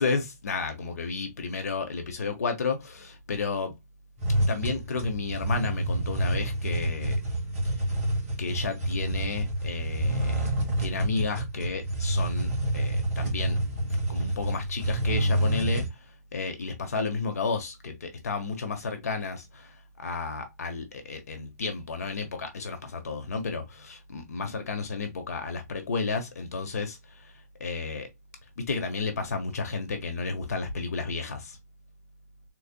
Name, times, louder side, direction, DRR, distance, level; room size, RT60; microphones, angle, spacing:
voice 1, 0.0-3.8 4.5-7.2 8.4-10.5 10.8-13.6 14.1-16.0 16.3-27.3 27.6-28.1 28.6-31.6, left 4 dB, 60° left, 1.3 m, -32 dB
sound 1, 4.2-15.9, right 1 dB, 10° right, 1.8 m, -28 dB
4.0 x 3.3 x 2.2 m
hypercardioid pair, 175°, 9 cm